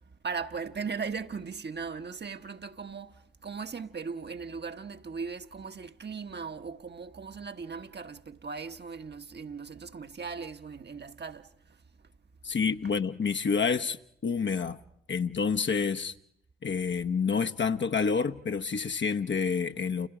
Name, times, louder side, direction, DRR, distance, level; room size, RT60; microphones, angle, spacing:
voice 1, 0.2-11.5 12.8-12.9, right 5 dB, 35° right, 1.3 m, -38 dB
voice 2, 12.4-14.8 15.1-16.1 16.6-20.1, left 5 dB, 40° left, 1.1 m, -28 dB
30.0 x 29.0 x 5.0 m
hypercardioid pair, 45°, 29 cm